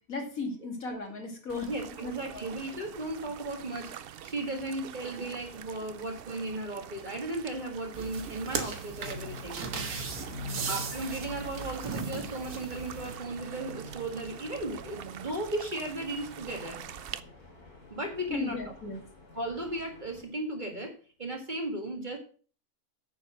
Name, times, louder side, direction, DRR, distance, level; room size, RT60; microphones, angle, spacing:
voice 1, 0.1-1.7 2.0-2.5 5.1-5.4 10.3-10.8 18.3-19.0, left 3 dB, 65° left, 2 dB, 2.8 m, -37 dB
sound 1, 1.5-17.2, right 9 dB, 65° right, 0.5 m, -45 dB
voice 2, 1.6-3.9 4.2-9.6 10.7-16.8 17.9-18.6 19.3-22.2, right 1 dB, 30° right, 2 dB, 1.9 m, -36 dB
sound 2, 7.9-13.2, right 5 dB, 90° right, 1.9 m, -37 dB
sound 3, 9.0-20.2, left 2 dB, 90° left, 3.9 m, -47 dB
9.2 x 7.0 x 6.1 m, 0.41 s
omnidirectional pair, 1.6 m